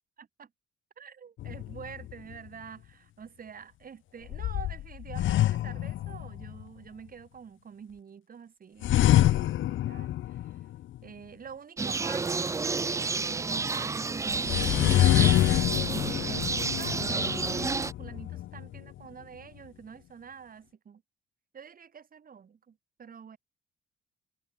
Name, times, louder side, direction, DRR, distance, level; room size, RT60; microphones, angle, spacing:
voice 1, 0.2-0.5 1.0-10.6 11.0-21.0 21.5-23.4, right 7 dB, 45° right, 3.0 m, -47 dB
sound 1, 1.4-2.4 4.3-6.6 8.8-11.0 14.3-19.0, left 13 dB, 75° left, 1.1 m, -26 dB
sound 2, 11.8-17.9, right 4 dB, 15° right, 0.3 m, -30 dB
cardioid pair, 90°, 20 cm